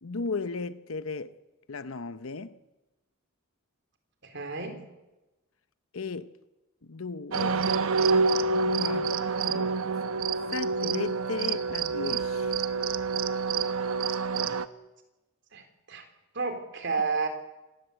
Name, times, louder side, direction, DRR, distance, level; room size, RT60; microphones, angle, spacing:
voice 1, 0.0-1.4 1.7-2.6 5.9-6.4 6.8-7.6 8.8-9.1 9.5-9.8 10.5-12.6, left 4 dB, 80° left, 0.8 m, -35 dB
voice 2, 4.2-4.8 15.5-16.1 16.3-17.3, right 4 dB, 55° right, 3.7 m, -31 dB
sound 1, 7.3-14.7, right 4 dB, 85° right, 1.0 m, -27 dB
26.5 x 19.0 x 8.1 m
head